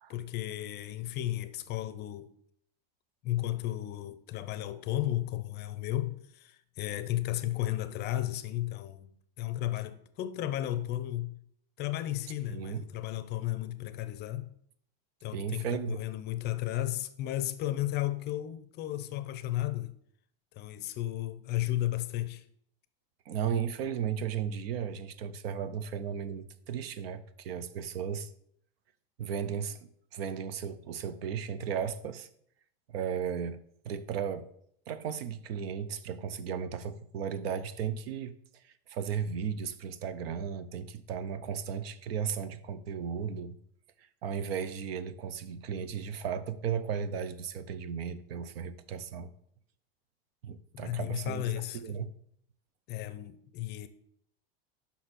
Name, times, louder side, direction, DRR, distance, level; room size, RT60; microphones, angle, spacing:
voice 1, 0.1-2.3 3.2-9.1 9.4-11.4 11.8-14.5 15.2-19.9 20.5-22.4 50.7-51.8 52.9-53.9, left 14 dB, 35° left, 0.5 m, -34 dB
voice 2, 12.5-12.8 15.3-16.0 23.3-28.3 29.2-32.3 32.9-33.6 33.8-34.5 34.9-38.3 38.6-43.6 44.0-49.3 50.4-52.1, right 7 dB, 80° right, 0.7 m, -35 dB
5.7 x 4.3 x 6.1 m
supercardioid pair, 125°, 30 cm